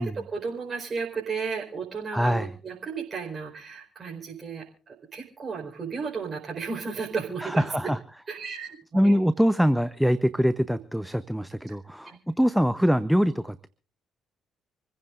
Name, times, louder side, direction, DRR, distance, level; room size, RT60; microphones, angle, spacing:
voice 1, 0.0-7.9 8.3-9.2 10.7-10.8 11.7-11.8 12.0-12.2, right 5 dB, 40° right, 4.6 m, -34 dB
voice 2, 2.1-2.5 7.4-8.0 8.9-13.7, equal, ahead, 0.9 m, -23 dB
27.5 x 15.5 x 2.6 m
hypercardioid pair, 45°, 0 cm